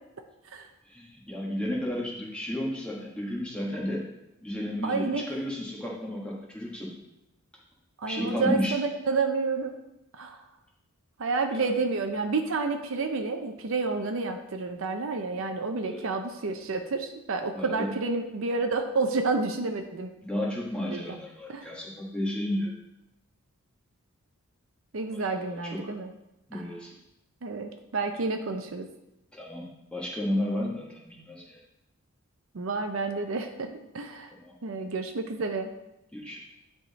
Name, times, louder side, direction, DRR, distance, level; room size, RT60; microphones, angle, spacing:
voice 1, 0.9-4.0 4.4-6.9 8.1-8.8 11.5-11.7 15.8-16.1 17.5-17.9 20.2-22.7 25.1-25.9 26.5-26.9 29.3-31.6 34.4-34.5 36.1-36.4, left 1 dB, 5° left, -4 dB, 1.3 m, -33 dB
voice 2, 4.8-5.2 8.0-9.7 10.2-10.4 11.2-20.1 20.8-21.2 21.5-21.7 24.9-26.1 26.5-26.6 27.4-28.9 32.5-34.3 34.6-35.7, right 3 dB, 60° right, 6 dB, 0.6 m, -30 dB
10.0 x 3.6 x 4.1 m, 0.89 s
head